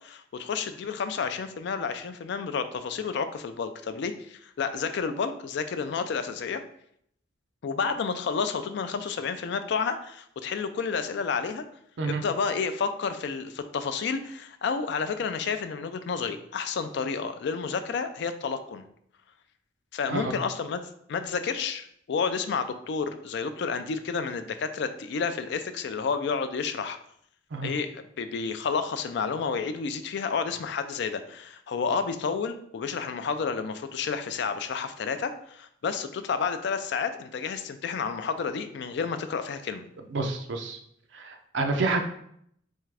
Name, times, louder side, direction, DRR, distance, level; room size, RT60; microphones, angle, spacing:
voice 1, 0.0-6.6 7.6-11.6 12.1-18.9 19.9-27.0 27.6-39.9, left 5 dB, 65° left, 10 dB, 0.4 m, -30 dB
voice 2, 40.1-40.8 41.1-42.1, right 3 dB, 70° right, 5 dB, 0.5 m, -28 dB
3.6 x 3.3 x 3.3 m, 0.70 s
head